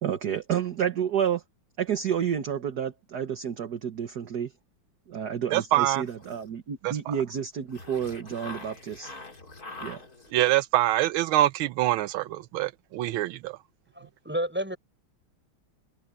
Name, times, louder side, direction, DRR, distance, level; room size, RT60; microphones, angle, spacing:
voice 1, 0.0-1.4 1.8-4.5 5.1-9.1 9.8-10.0, right 8 dB, 55° right, 1.7 m, -30 dB
voice 2, 5.5-6.0 6.8-7.1 10.3-13.6, right 15 dB, 85° right, 1.5 m, -25 dB
sound 1, 6.0-6.7 7.7-10.5, left 2 dB, 45° left, 4.1 m, -44 dB
voice 3, 14.0-14.8, right 1 dB, 5° right, 7.2 m, -30 dB
omnidirectional pair, 2.2 m